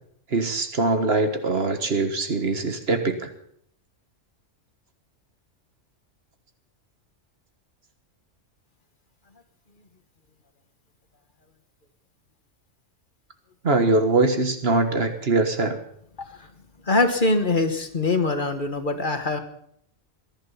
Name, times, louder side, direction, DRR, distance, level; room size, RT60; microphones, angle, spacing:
voice 1, 0.3-3.3 13.6-15.8, right 3 dB, 55° right, 7 dB, 1.6 m, -22 dB
voice 2, 16.2-16.5 16.8-19.4, left 2 dB, 40° left, 8 dB, 1.5 m, -23 dB
20.5 x 11.5 x 5.7 m, 0.67 s
omnidirectional pair, 1.3 m